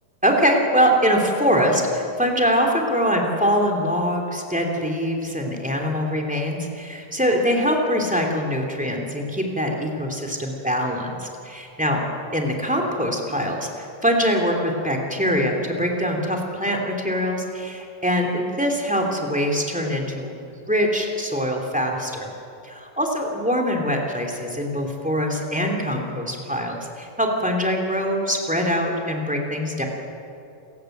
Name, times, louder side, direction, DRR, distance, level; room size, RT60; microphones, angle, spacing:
voice 1, 0.2-12.0 12.3-22.3 22.6-29.8, equal, 5° right, 2 dB, 2.1 m, -23 dB
28.5 x 15.5 x 7.9 m, 2.6 s
omnidirectional pair, 4.1 m